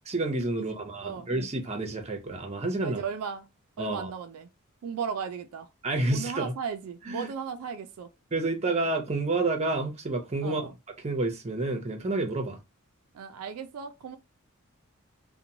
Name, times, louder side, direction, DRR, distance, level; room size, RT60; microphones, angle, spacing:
voice 1, 0.1-3.0 3.8-4.1 5.8-6.5 7.1-7.3 8.3-10.7 11.0-12.6, right 2 dB, 30° right, 0.6 m, -29 dB
voice 2, 0.6-1.3 2.8-3.5 3.8-4.5 4.8-5.7 6.1-8.1 10.4-10.7 13.1-14.2, right 6 dB, 80° right, 0.4 m, -36 dB
2.9 x 2.2 x 2.6 m
head